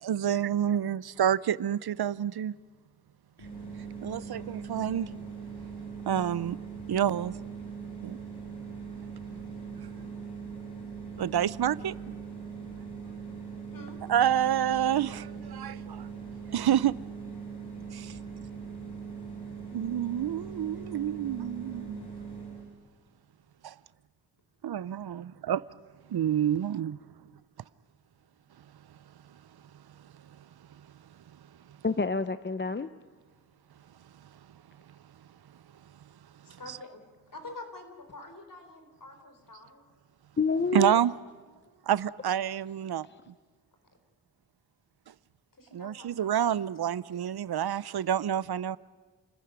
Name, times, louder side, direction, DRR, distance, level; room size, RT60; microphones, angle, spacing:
voice 1, 0.0-2.5 4.0-5.1 6.1-6.6 6.9-7.3 8.0-8.2 11.2-11.9 14.1-16.1 16.5-17.0 17.9-18.1 19.7-22.1 23.6-23.7 24.6-25.6 26.1-27.0 40.7-41.1 41.9-43.1 45.7-48.8, right 10 dB, 75° right, 0.6 m, -28 dB
sound 1, 3.4-22.7, right 6 dB, 85° left, 7.2 m, -41 dB
voice 2, 4.1-4.5 13.5-14.0 36.4-37.0 37.3-39.8 45.6-47.4, left 2 dB, 55° left, 4.1 m, -48 dB
voice 3, 31.8-32.9 40.4-41.0 43.0-43.2, left 4 dB, 30° left, 0.7 m, -28 dB
28.5 x 14.5 x 9.5 m
cardioid pair, 55°, 38 cm